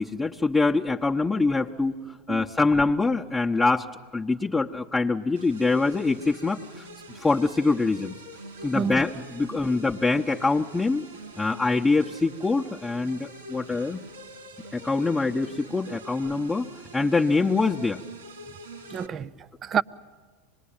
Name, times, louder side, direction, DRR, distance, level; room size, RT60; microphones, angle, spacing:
voice 1, 0.0-3.9 4.1-6.9 7.1-8.2 8.6-11.0 11.4-14.0 14.7-18.0, left 3 dB, 10° left, 0.9 m, -24 dB
voice 2, 2.0-2.5 8.7-9.0 18.9-19.8, right 8 dB, 30° right, 0.7 m, -29 dB
sound 1, 5.4-19.1, right 1 dB, 85° right, 3.6 m, -44 dB
25.5 x 21.0 x 8.8 m
hypercardioid pair, 95°, 0 cm